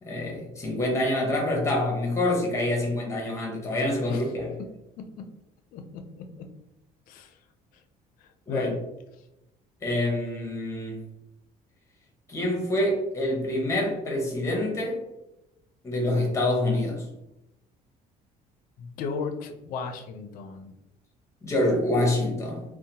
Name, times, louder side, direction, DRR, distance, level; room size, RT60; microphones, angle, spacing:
voice 1, 0.0-4.6 8.5-8.7 9.8-11.1 12.3-15.0 15.8-17.1 21.4-22.6, left 1 dB, 20° left, 0 dB, 0.7 m, -26 dB
voice 2, 7.1-7.4 7.7-7.8 8.2-8.8 18.8-20.7, left 5 dB, 65° left, 6 dB, 0.4 m, -35 dB
2.7 x 2.0 x 2.8 m, 0.90 s
cardioid pair, 150°, 16 cm